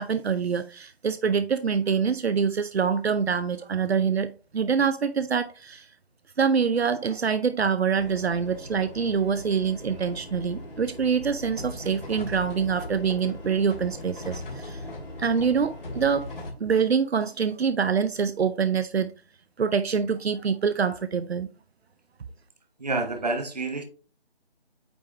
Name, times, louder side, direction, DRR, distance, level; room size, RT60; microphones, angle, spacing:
voice 1, 0.0-5.9 6.4-14.8 15.2-16.3 16.6-19.1 19.6-21.5, right 6 dB, 75° right, 0.6 m, -25 dB
sound 1, 7.9-16.5, left 1 dB, 55° left, 2.8 m, -39 dB
voice 2, 22.8-23.8, right 3 dB, 40° right, 1.0 m, -28 dB
8.7 x 3.5 x 3.1 m
figure-of-eight pair, 175°, 32 cm